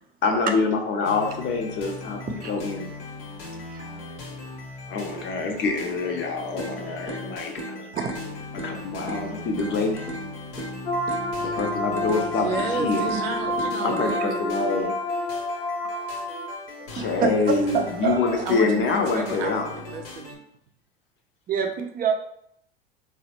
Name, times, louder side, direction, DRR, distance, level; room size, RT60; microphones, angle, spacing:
voice 1, 0.2-2.9 4.9-7.9 8.5-10.0 11.4-13.0 13.8-14.9 16.9-19.8, left 4 dB, 40° left, 3 dB, 0.7 m, -26 dB
sound 1, 1.0-20.4, left 3 dB, 65° left, 0.9 m, -40 dB
sound 2, 6.6-14.6, right 1 dB, 10° left, 0.8 m, -38 dB
sound 3, 10.9-16.5, left 1 dB, 85° left, 0.6 m, -28 dB
voice 2, 12.1-14.6 18.4-20.4, right 4 dB, 70° right, 4 dB, 0.7 m, -32 dB
voice 3, 16.8-18.5 21.5-22.1, right 6 dB, 30° right, 4 dB, 0.5 m, -27 dB
4.0 x 2.1 x 2.8 m, 0.70 s
hypercardioid pair, 80°, 30 cm